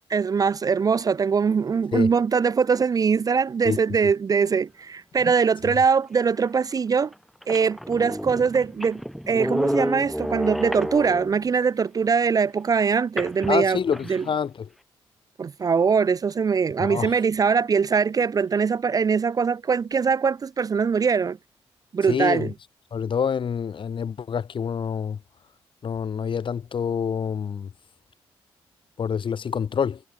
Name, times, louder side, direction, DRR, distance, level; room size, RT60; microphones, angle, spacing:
voice 1, 0.1-7.1 7.5-9.0 9.3-13.8 14.1-14.3 15.4-21.4 21.9-22.5, right 5 dB, 35° right, 0.4 m, -22 dB
sound 1, 6.5-6.6 7.1-7.2 7.4-11.5 13.2-14.3, equal, ahead, 0.8 m, -30 dB
voice 2, 13.5-14.7 16.8-17.1 22.1-22.5 22.9-25.2 25.8-27.7 29.0-30.0, left 7 dB, 55° left, 1.7 m, -27 dB
cardioid pair, 65°, 10 cm